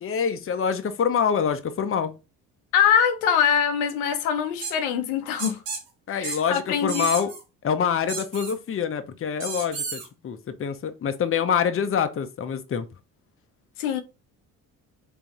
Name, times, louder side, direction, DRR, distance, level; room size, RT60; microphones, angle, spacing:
voice 1, 0.0-2.1 6.1-7.3 7.6-12.9, left 7 dB, 30° left, 0.7 m, -26 dB
voice 2, 2.7-5.6 6.1-7.3 13.8-14.0, left 8 dB, 85° left, 0.8 m, -23 dB
sound 1, 4.6-4.7 5.4-5.8 6.2-6.4 6.9-7.4 8.1-8.5 9.4-10.1, right 4 dB, 75° right, 1.5 m, -32 dB
3.7 x 3.4 x 3.0 m
hypercardioid pair, 55°, 42 cm